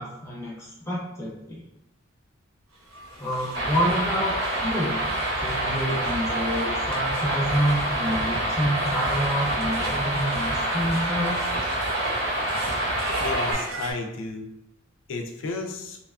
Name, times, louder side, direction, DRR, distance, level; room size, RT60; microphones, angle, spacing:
voice 1, 0.0-1.6 3.2-5.0 5.4-11.4, equal, 15° left, -5 dB, 0.6 m, -28 dB
sound 1, 2.7-13.9, right 1 dB, 90° right, 0.6 m, -37 dB
sound 2, 3.5-13.5, right 1 dB, 60° right, 1.0 m, -27 dB
voice 2, 12.9-14.5 15.1-16.0, left 3 dB, 65° left, 2 dB, 0.3 m, -33 dB
2.7 x 2.2 x 2.3 m, 0.86 s
head